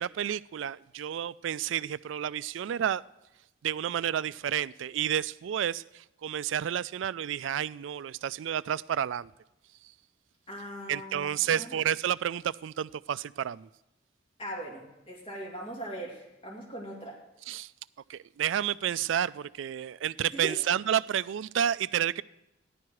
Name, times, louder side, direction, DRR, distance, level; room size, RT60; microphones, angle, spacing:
voice 1, 0.0-3.0 3.6-9.3 10.9-13.7 17.5-17.7 18.1-22.2, right 9 dB, 75° right, 17 dB, 0.3 m, -30 dB
voice 2, 10.5-11.7 14.4-17.2 20.3-20.6, right 1 dB, 30° left, -2 dB, 2.5 m, -40 dB
14.5 x 11.0 x 4.7 m, 0.91 s
head